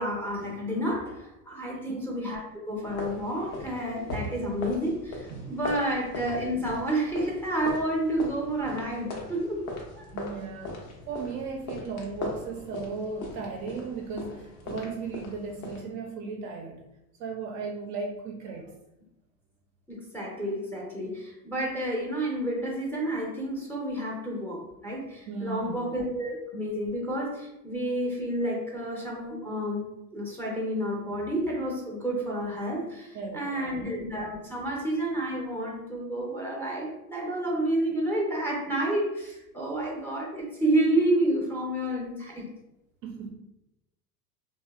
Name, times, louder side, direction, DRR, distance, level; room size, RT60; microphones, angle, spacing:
voice 1, 0.0-9.6 9.9-10.0 19.9-29.9 30.1-42.5, right 1 dB, 5° left, -3 dB, 0.5 m, -30 dB
voice 2, 1.7-2.0 5.3-5.5 10.1-16.8 17.2-18.7 25.3-25.9 33.1-33.8 43.0-43.3, right 4 dB, 45° right, 1 dB, 0.4 m, -36 dB
sound 1, 2.8-15.8, left 2 dB, 85° left, 0.8 m, -39 dB
2.7 x 2.0 x 2.2 m, 0.91 s
hypercardioid pair, 100°, 42 cm